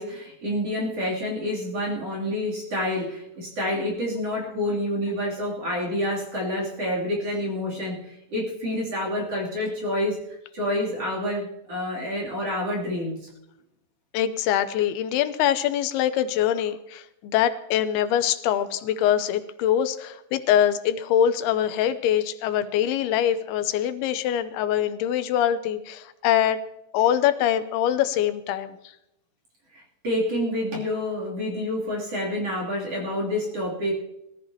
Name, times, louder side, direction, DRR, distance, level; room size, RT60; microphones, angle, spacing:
voice 1, 0.0-10.2 10.5-13.3 29.7-33.9, left 1 dB, 40° right, -4 dB, 3.7 m, -28 dB
voice 2, 14.1-26.6 26.9-28.8, left 10 dB, 85° left, 11 dB, 2.7 m, -23 dB
21.5 x 13.5 x 2.9 m, 0.86 s
omnidirectional pair, 4.6 m